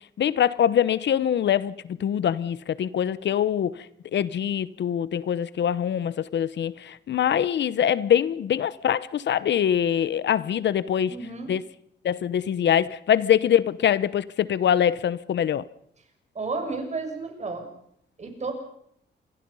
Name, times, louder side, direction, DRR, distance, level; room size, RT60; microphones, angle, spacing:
voice 1, 0.2-3.9 4.1-11.2 11.5-11.6 12.0-15.6, left 9 dB, 70° left, 0.9 m, -23 dB
voice 2, 11.1-11.5 16.3-17.7 18.2-18.5, right 3 dB, 40° right, 6.4 m, -32 dB
27.5 x 22.5 x 5.6 m
wide cardioid pair, 125°, 19 cm